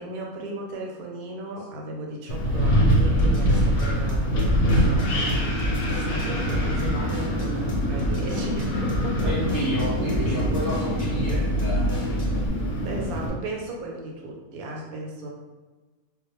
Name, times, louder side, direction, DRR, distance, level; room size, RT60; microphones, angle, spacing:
voice 1, 0.0-9.4 9.9-10.3 12.8-15.3, right 1 dB, 80° right, 0 dB, 1.0 m, -35 dB
Wind, 2.3-13.3, equal, 75° left, 1.0 m, -24 dB
Drum kit / Drum, 2.9-12.5, equal, 55° left, 0.7 m, -31 dB
voice 2, 9.2-11.9, equal, 55° right, -8 dB, 0.6 m, -31 dB
2.3 x 2.1 x 2.9 m, 1.3 s
omnidirectional pair, 1.5 m